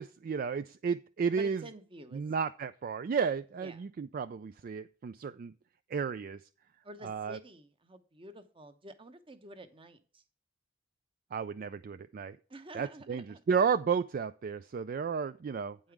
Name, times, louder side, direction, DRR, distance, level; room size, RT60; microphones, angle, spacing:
voice 1, 0.0-1.6 2.1-5.5 5.9-6.4 7.0-7.4 11.3-12.4 12.7-15.8, right 6 dB, 45° right, 12 dB, 0.3 m, -32 dB
voice 2, 1.4-2.2 3.6-3.8 6.8-10.2 12.5-13.4 15.8-15.9, right 1 dB, 30° right, 10 dB, 0.9 m, -49 dB
8.8 x 5.5 x 4.7 m, 0.38 s
head